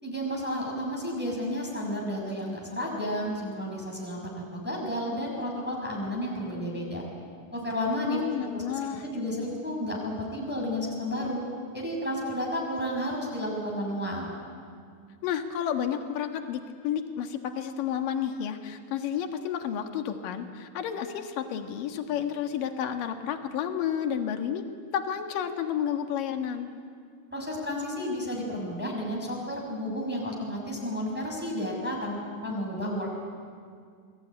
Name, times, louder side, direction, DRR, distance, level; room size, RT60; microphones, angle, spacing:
voice 1, 0.0-7.0 7.5-8.6 9.0-11.4 11.7-14.3 27.3-33.3, equal, 5° right, -2 dB, 5.8 m, -32 dB
voice 2, 8.1-9.0 15.2-24.6 24.9-26.7, left 9 dB, 65° left, 6 dB, 3.1 m, -31 dB
28.5 x 21.0 x 9.7 m, 2.2 s
omnidirectional pair, 4.3 m